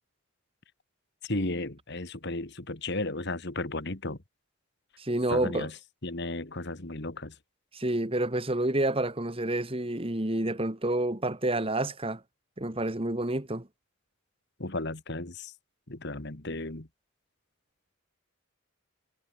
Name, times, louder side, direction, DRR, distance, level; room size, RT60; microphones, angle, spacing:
voice 1, 1.2-4.2 5.3-5.8 6.0-7.4 14.6-15.5 15.9-16.9, left 2 dB, 50° left, 2.1 m, -34 dB
voice 2, 5.0-5.7 7.7-12.2 12.6-13.7, right 1 dB, 25° right, 1.7 m, -29 dB
head